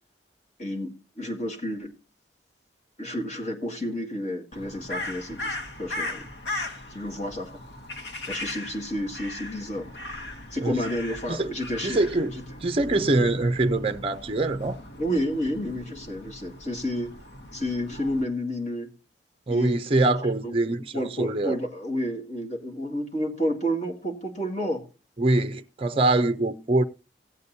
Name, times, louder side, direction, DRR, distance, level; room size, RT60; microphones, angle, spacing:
voice 1, 0.6-1.9 3.0-6.2 6.9-7.5 8.3-9.9 10.5-12.0 12.3-12.4 13.2-13.3 15.0-17.1 17.5-18.9 19.5-19.8 20.4-24.8, equal, 40° left, 2.2 m, -30 dB
Crow, 4.5-18.2, left 2 dB, 70° left, 1.4 m, -38 dB
voice 2, 11.8-12.3 12.6-14.8 19.5-21.6 25.2-26.8, right 2 dB, 30° right, 0.5 m, -24 dB
16.5 x 8.1 x 2.7 m
head